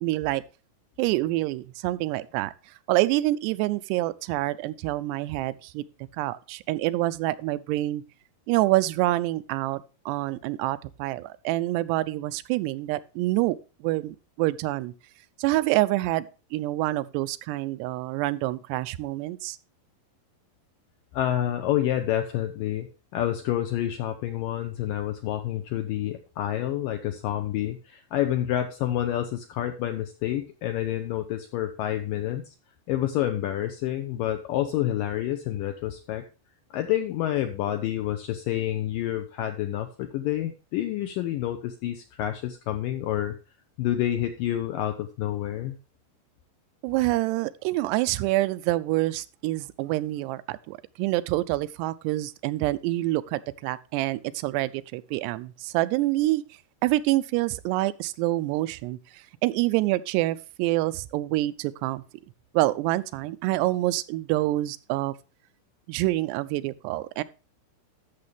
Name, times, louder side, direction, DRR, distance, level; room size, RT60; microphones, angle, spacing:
voice 1, 0.0-0.4 1.0-2.5 2.9-5.8 6.2-8.0 8.5-14.9 15.4-19.6 46.8-56.4 56.8-62.0 62.5-65.1 65.9-67.2, right 17 dB, 85° right, 2.7 m, -27 dB
voice 2, 21.1-22.9 23.1-32.5 32.9-36.2 36.7-43.4 43.8-45.8, left 12 dB, 80° left, 2.0 m, -28 dB
12.5 x 6.6 x 3.4 m
omnidirectional pair, 4.8 m